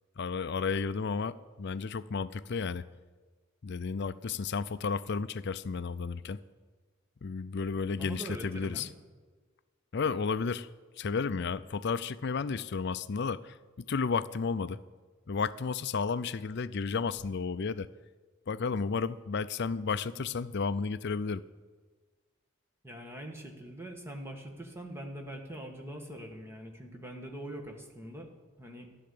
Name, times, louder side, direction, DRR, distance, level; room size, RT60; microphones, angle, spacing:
voice 1, 0.2-2.8 3.6-6.4 7.2-8.9 9.9-10.7 11.0-13.6 13.9-14.8 15.3-17.9 18.5-21.4, left 5 dB, 50° left, 15 dB, 0.4 m, -32 dB
voice 2, 8.0-8.9 22.8-28.3 28.6-28.9, right 1 dB, 10° right, 2 dB, 1.8 m, -43 dB
14.0 x 11.5 x 8.6 m, 1.4 s
head